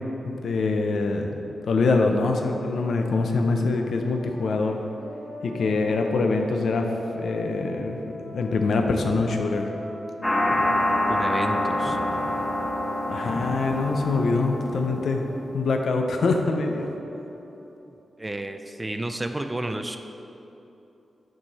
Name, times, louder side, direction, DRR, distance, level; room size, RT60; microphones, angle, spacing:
voice 1, 0.2-1.3 1.7-4.8 5.4-6.9 7.2-8.0 8.2-9.7 13.1-15.3 15.5-16.9, left 3 dB, 80° left, 4 dB, 0.5 m, -24 dB
sound 1, 2.3-17.8, right 1 dB, 65° right, 1.1 m, -41 dB
sound 2, 10.2-15.5, left 1 dB, 15° left, 0.9 m, -26 dB
voice 2, 11.1-12.0 17.6-17.7 18.2-20.0, right 1 dB, 20° right, 7 dB, 0.3 m, -31 dB
6.2 x 4.8 x 4.1 m, 3.0 s
wide cardioid pair, 95°, 0 cm